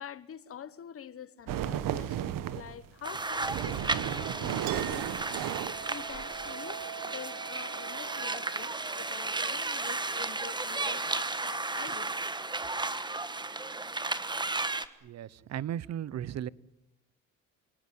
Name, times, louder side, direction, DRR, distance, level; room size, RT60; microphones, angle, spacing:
voice 1, 0.0-5.1 5.9-12.2, left 8 dB, 40° left, 1.4 m, -46 dB
sound 1, 1.5-2.7 3.1-6.5, right 11 dB, 65° right, 1.5 m, -34 dB
sound 2, 3.0-14.9, right 3 dB, 10° right, 1.3 m, -34 dB
Chink clink, 4.7-11.7, right 10 dB, 85° right, 1.7 m, -46 dB
voice 2, 15.0-16.5, right 10 dB, 50° right, 0.9 m, -36 dB
28.5 x 18.5 x 9.5 m
cardioid pair, 125°, 35 cm